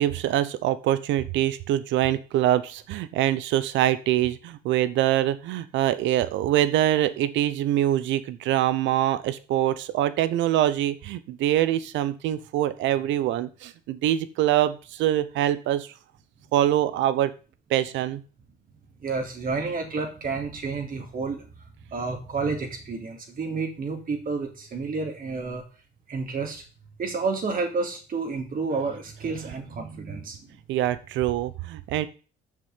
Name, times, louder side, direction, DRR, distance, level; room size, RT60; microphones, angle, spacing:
voice 1, 0.0-15.9 16.5-17.3 17.7-18.2 30.7-32.1, right 12 dB, 75° right, 15 dB, 1.0 m, -24 dB
voice 2, 19.0-21.4 21.9-25.7 26.1-26.6 27.0-30.6, right 4 dB, 45° right, 3 dB, 3.6 m, -30 dB
7.3 x 6.6 x 7.6 m, 0.37 s
supercardioid pair, 75°, 20 cm